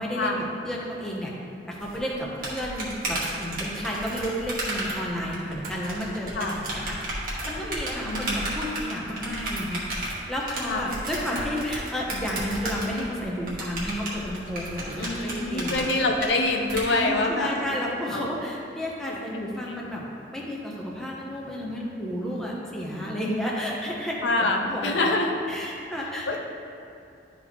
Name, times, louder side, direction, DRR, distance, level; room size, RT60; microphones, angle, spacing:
voice 1, 0.0-1.3 1.7-7.0 7.5-15.8 16.9-20.0 20.3-25.1 25.5-26.4, equal, 5° left, -4 dB, 0.8 m, -32 dB
sound 1, 1.8-16.8, right 1 dB, 50° right, 1.5 m, -33 dB
voice 2, 8.0-8.5 10.7-10.9 15.0-18.4 19.6-19.8 24.2-25.3 26.3-26.4, left 2 dB, 75° left, 2 dB, 0.7 m, -26 dB
11.5 x 4.1 x 3.0 m, 2.6 s
head